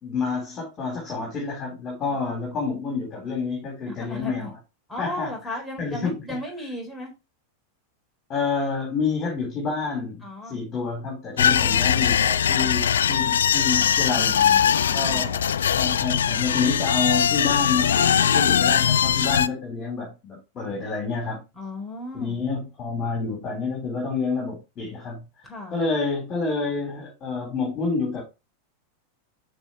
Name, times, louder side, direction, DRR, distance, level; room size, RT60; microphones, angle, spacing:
voice 1, 0.0-4.5 5.0-6.4 8.3-14.3 14.9-21.4 22.1-25.2 25.7-28.2, left 4 dB, 30° left, 4.3 m, -28 dB
voice 2, 2.1-2.4 3.9-4.5 4.9-7.1 10.2-10.6 14.1-15.3 21.6-22.4 25.4-25.8, left 1 dB, 5° left, 4.3 m, -36 dB
sound 1, 11.4-19.5, left 8 dB, 65° left, 0.4 m, -21 dB
13.5 x 4.6 x 3.2 m
figure-of-eight pair, 90°, 0 cm